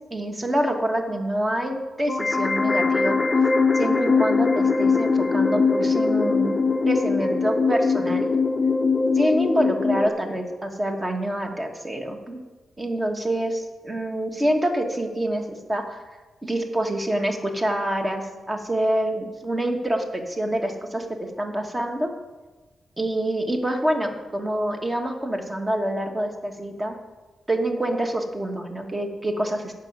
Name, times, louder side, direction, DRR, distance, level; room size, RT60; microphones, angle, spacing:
voice 1, 0.1-6.6 6.8-8.3 9.1-12.4 12.8-16.0 16.4-22.1 23.0-27.0 27.5-29.7, right 1 dB, 15° right, 4 dB, 1.4 m, -26 dB
sound 1, 2.1-10.1, left 4 dB, 15° left, 0.7 m, -21 dB
12.0 x 5.9 x 8.8 m, 1.2 s
wide cardioid pair, 140°, 0 cm